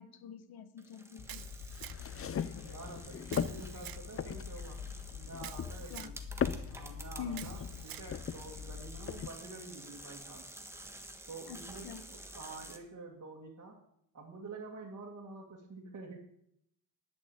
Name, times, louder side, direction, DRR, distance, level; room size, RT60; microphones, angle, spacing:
voice 1, 0.0-1.5 5.9-6.1 7.2-7.5 11.5-12.0, left 6 dB, 85° left, 1.1 m, -45 dB
sound 1, 0.8-12.8, right 1 dB, 5° right, 1.4 m, -51 dB
sound 2, 1.2-9.3, left 7 dB, 40° left, 0.6 m, -39 dB
Camera, 1.3-2.2 3.3-4.0 5.4-6.2 7.3-8.1, right 13 dB, 70° right, 0.5 m, -48 dB
voice 2, 2.6-4.8 5.1-6.2 6.7-10.5 11.3-13.8 14.1-16.2, right 3 dB, 45° right, 2.6 m, -48 dB
11.0 x 7.0 x 8.9 m
cardioid pair, 120°, 37 cm